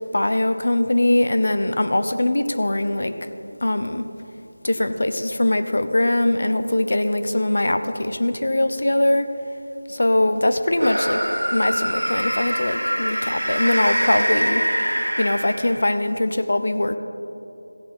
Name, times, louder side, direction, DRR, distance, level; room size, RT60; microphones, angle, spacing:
voice 1, 0.1-3.1 3.6-4.0 4.6-9.3 9.9-11.2 11.5-14.6 15.2-17.0, left 1 dB, 60° left, 9 dB, 0.7 m, -21 dB
sound 1, 10.7-16.0, equal, 85° right, 1.5 m, -24 dB
16.0 x 7.5 x 4.3 m, 2.9 s
figure-of-eight pair, 170°, 0 cm